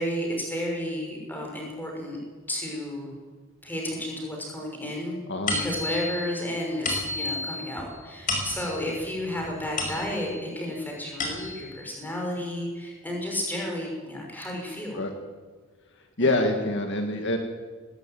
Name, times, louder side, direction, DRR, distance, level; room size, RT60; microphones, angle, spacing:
voice 1, 0.0-2.2 2.5-3.1 3.6-5.2 5.5-15.1 16.2-16.4, left 1 dB, 10° left, -1 dB, 5.9 m, -32 dB
sound 1, 5.5-10.5 10.9-11.8, left 2 dB, 35° left, 5.3 m, -32 dB
voice 2, 16.2-17.4, left 2 dB, 55° left, 4 dB, 1.9 m, -25 dB
19.0 x 16.0 x 9.3 m, 1.4 s
head